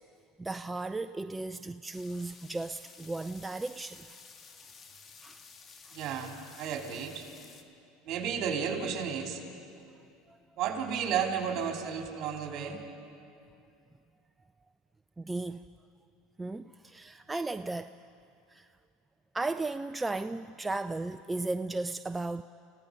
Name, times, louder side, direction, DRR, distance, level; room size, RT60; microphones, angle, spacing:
voice 1, 0.4-4.2 5.2-5.4 5.8-5.9 10.3-10.4 15.2-15.6 16.4-17.9 18.5-18.7 19.3-22.4, right 2 dB, 10° right, 10 dB, 0.4 m, -35 dB
sound 1, 1.9-7.6, left 5 dB, 30° left, 1.8 m, -53 dB
voice 2, 5.9-7.3 8.0-9.4 10.6-12.8, right 7 dB, 50° right, 2 dB, 3.5 m, -33 dB
29.5 x 16.5 x 5.3 m, 2.5 s
supercardioid pair, 95°, 0 cm